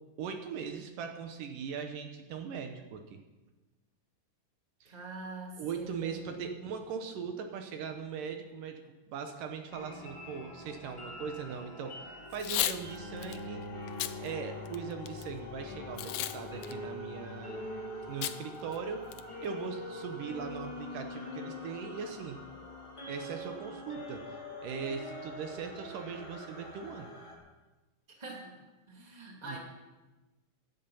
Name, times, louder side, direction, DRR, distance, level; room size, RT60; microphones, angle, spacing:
voice 1, 0.2-3.2 4.8-5.0 5.6-8.8 9.1-12.0 12.3-13.7 14.2-17.7 18.1-19.1 19.4-22.4 23.1-27.1 29.4-29.6, right 6 dB, 75° right, 6 dB, 2.5 m, -40 dB
voice 2, 4.8-6.2 28.2-28.5 28.9-29.6, right 2 dB, 15° right, -1 dB, 2.1 m, -44 dB
sound 1, 9.7-27.3, left 2 dB, 10° left, 2.4 m, -44 dB
Packing tape duct tape / Tearing, 12.3-12.8 13.2-13.4 13.9-14.1 14.7-15.2 16.0-16.4 16.6-16.7 18.2-18.4 18.7-18.8 19.1-19.5, left 14 dB, 85° left, 1.6 m, -33 dB
Bowed string instrument, 12.8-18.0, left 2 dB, 50° left, 1.3 m, -46 dB
16.0 x 11.5 x 5.5 m, 1.1 s
omnidirectional pair, 4.0 m